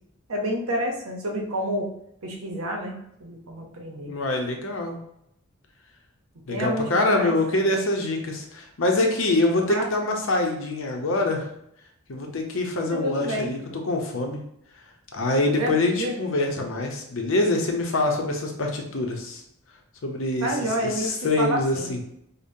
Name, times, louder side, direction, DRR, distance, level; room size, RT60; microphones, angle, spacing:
voice 1, 0.3-1.9 2.2-4.1 6.5-7.3 7.6-7.8 9.7-9.9 12.8-13.5 15.6-16.2 20.4-21.9, equal, 85° right, 1 dB, 0.8 m, -29 dB
voice 2, 4.0-5.0 6.5-11.5 12.1-13.6 13.8-14.4 15.1-19.4 20.0-20.5 21.0-22.0, left 2 dB, 65° left, 2 dB, 0.7 m, -25 dB
5.1 x 2.1 x 2.7 m, 0.76 s
head